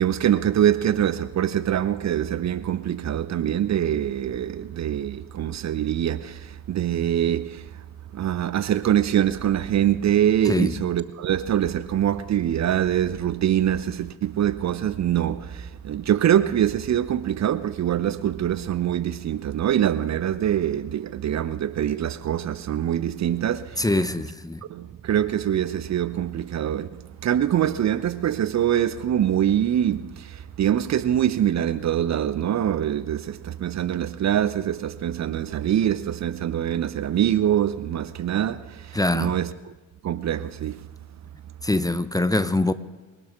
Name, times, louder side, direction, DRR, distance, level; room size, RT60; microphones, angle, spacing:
voice 1, 0.0-7.8 8.1-23.9 24.7-39.7 40.0-40.9, right 10 dB, 40° right, 0.7 m, -24 dB
voice 2, 23.8-24.6 38.9-39.3 41.6-42.7, left 2 dB, 10° left, 0.8 m, -23 dB
24.0 x 12.0 x 3.6 m
figure-of-eight pair, 40°, 43 cm